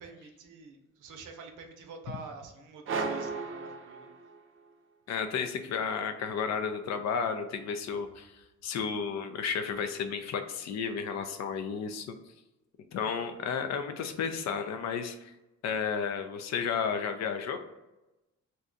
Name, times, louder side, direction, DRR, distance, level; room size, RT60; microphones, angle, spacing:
voice 1, 0.0-4.1, right 4 dB, 90° right, 4 dB, 0.6 m, -47 dB
sound 1, 2.9-4.6, right 4 dB, 45° right, 0.5 m, -35 dB
voice 2, 5.1-12.1 12.9-15.3 15.6-17.6, left 6 dB, 60° left, 8 dB, 0.5 m, -32 dB
2.7 x 2.2 x 3.7 m, 0.99 s
cardioid pair, 90°, 30 cm